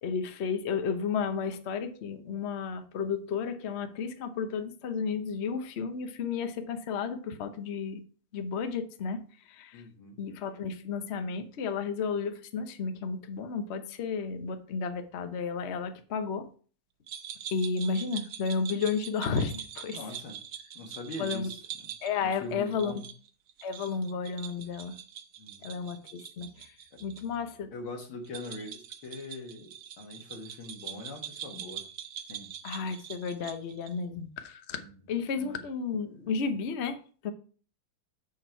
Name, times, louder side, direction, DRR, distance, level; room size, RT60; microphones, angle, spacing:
voice 1, 0.0-8.0 8.3-9.2 9.5-9.8 10.2-16.5 17.5-20.0 21.2-21.5 22.0-22.9 23.6-24.9 25.6-26.7 27.0-27.7 32.6-34.8 35.1-37.0 37.2-37.3, left 5 dB, 55° left, 8 dB, 0.7 m, -32 dB
voice 2, 9.7-10.2 19.9-20.4 20.7-23.0 25.4-25.7 27.7-31.8 32.3-32.5 34.8-34.9 35.4-35.6, left 2 dB, 90° left, 2 dB, 2.5 m, -42 dB
sound 1, 17.1-27.2 27.5-27.6 28.2-34.0, right 9 dB, 65° right, 1.3 m, -43 dB
6.9 x 6.3 x 4.4 m, 0.41 s
omnidirectional pair, 2.2 m